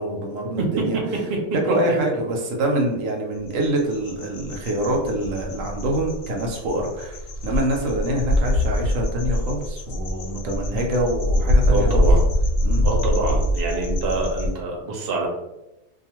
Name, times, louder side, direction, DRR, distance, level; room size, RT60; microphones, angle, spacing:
voice 1, 0.0-1.0 1.6-12.0 12.6-12.9, right 1 dB, 75° right, 1 dB, 1.0 m, -25 dB
voice 2, 0.6-1.4 1.9-2.0 11.7-12.2 12.8-15.3, right 2 dB, 55° right, 0 dB, 0.8 m, -25 dB
sound 1, 3.5-14.5, equal, 85° left, 1.0 m, -23 dB
2.4 x 2.4 x 2.9 m, 0.95 s
omnidirectional pair, 1.4 m